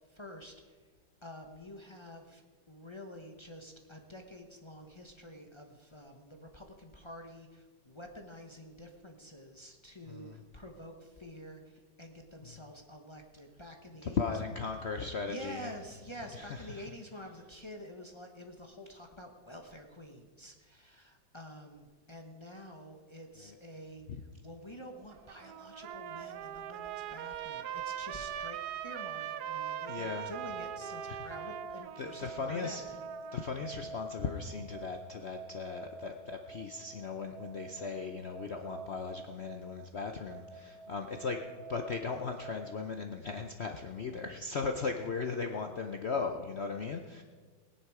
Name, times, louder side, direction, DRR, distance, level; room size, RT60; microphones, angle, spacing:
voice 1, 0.1-0.8 1.2-14.3 15.3-33.0, equal, 30° left, 3 dB, 0.5 m, -48 dB
voice 2, 10.1-10.4 12.4-12.5 14.0-15.7 16.3-16.8 23.4-23.6 24.1-24.2 29.9-30.3 31.1-31.2 32.0-32.8 33.3-41.4 41.7-47.2, left 5 dB, 70° left, 5 dB, 0.6 m, -37 dB
sound 1, 24.6-42.8, right 4 dB, 25° right, 0.9 m, -49 dB
Trumpet, 25.1-33.5, right 10 dB, 70° right, 1.0 m, -41 dB
18.5 x 10.0 x 4.8 m, 1.5 s
omnidirectional pair, 2.1 m